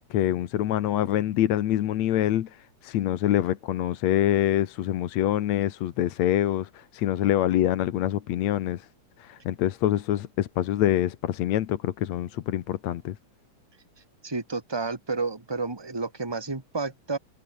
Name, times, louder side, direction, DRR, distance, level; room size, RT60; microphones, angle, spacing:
voice 1, 0.1-2.5 2.8-8.8 9.2-13.2, left 12 dB, 65° left, 2.2 m, -25 dB
voice 2, 14.2-17.2, right 3 dB, 10° right, 2.5 m, -31 dB
omnidirectional pair, 3.6 m